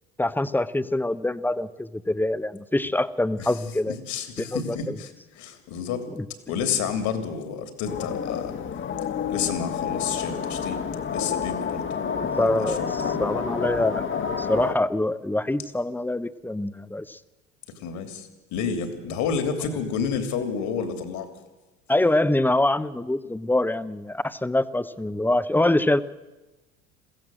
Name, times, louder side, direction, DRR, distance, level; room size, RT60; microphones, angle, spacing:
voice 1, 0.2-3.9 4.4-4.9 12.4-12.8 13.2-14.1 14.4-17.2 21.9-26.0, left 1 dB, 5° left, 14 dB, 0.9 m, -24 dB
voice 2, 3.9-6.1 6.5-8.5 9.3-10.8 11.1-13.2 17.8-21.3, left 6 dB, 60° left, 8 dB, 3.2 m, -30 dB
sound 1, 7.8-14.7, left 7 dB, 40° left, 1.6 m, -29 dB
22.0 x 15.5 x 7.7 m, 1.1 s
hypercardioid pair, 75°, 32 cm